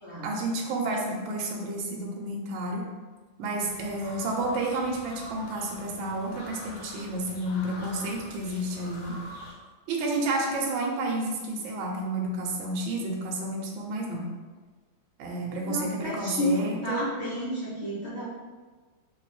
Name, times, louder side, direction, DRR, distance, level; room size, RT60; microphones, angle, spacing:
voice 1, 0.2-2.8 3.4-9.2 9.9-14.3 15.2-17.1, right 2 dB, 75° right, 0 dB, 1.3 m, -30 dB
sound 1, 3.6-9.5, left 1 dB, 85° left, 1.5 m, -45 dB
voice 2, 15.6-18.2, equal, 65° left, -9 dB, 0.7 m, -31 dB
3.3 x 2.9 x 3.1 m, 1.4 s
omnidirectional pair, 2.3 m